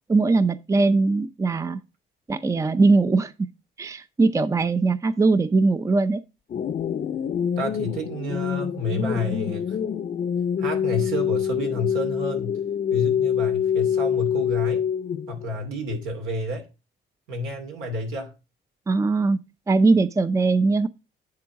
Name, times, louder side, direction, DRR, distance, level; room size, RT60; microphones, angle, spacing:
voice 1, 0.1-1.8 2.3-3.3 3.8-6.2 18.9-19.4 19.7-20.9, right 3 dB, 15° right, 0.5 m, -20 dB
sound 1, 6.5-15.5, left 8 dB, 45° left, 0.6 m, -25 dB
voice 2, 7.6-9.8 10.6-12.6 12.9-14.8 15.3-16.7 17.3-18.3, left 1 dB, 85° right, 2.7 m, -30 dB
9.6 x 3.8 x 4.7 m
cardioid pair, 90°, 20 cm